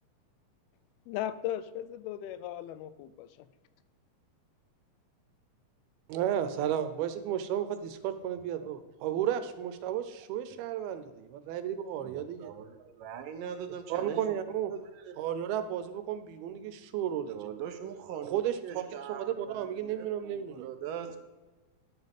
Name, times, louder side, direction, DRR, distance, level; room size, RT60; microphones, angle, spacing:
voice 1, 1.1-3.5, left 12 dB, 90° left, 14 dB, 2.6 m, -37 dB
voice 2, 6.1-12.5 13.9-14.7 15.2-17.4 18.2-20.7, right 10 dB, 90° right, 11 dB, 2.8 m, -33 dB
voice 3, 11.9-14.2 14.7-15.2 17.3-21.2, right 8 dB, 75° right, 8 dB, 2.3 m, -42 dB
11.0 x 8.2 x 5.3 m, 1.2 s
omnidirectional pair, 4.3 m